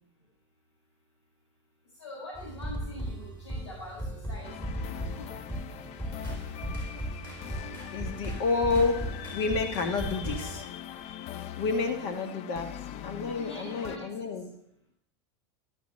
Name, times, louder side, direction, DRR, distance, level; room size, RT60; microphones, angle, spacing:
voice 1, 2.0-5.4 13.3-14.1, left 2 dB, 85° left, -6 dB, 5.8 m, -44 dB
sound 1, 2.3-10.6, right 1 dB, 15° left, 4.9 m, -37 dB
sound 2, 4.4-14.0, left 10 dB, 45° left, 0.6 m, -41 dB
voice 2, 7.4-9.0 9.3-10.7 11.6-12.7 13.0-14.5, left 4 dB, 65° left, 5 dB, 1.5 m, -30 dB
12.5 x 12.0 x 3.2 m, 0.73 s
hypercardioid pair, 105°, 15 cm